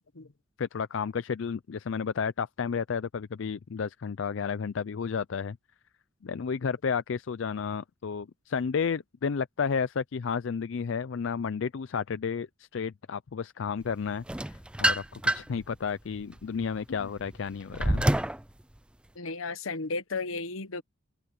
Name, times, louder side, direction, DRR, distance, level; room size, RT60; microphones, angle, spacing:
voice 1, 0.6-5.6 6.2-18.1, left 6 dB, 65° left, 0.4 m, -32 dB
sound 1, 14.3-15.6 16.2-18.4, right 1 dB, 5° right, 0.3 m, -27 dB
voice 2, 19.1-20.8, left 3 dB, 80° left, 1.1 m, -34 dB
open air
head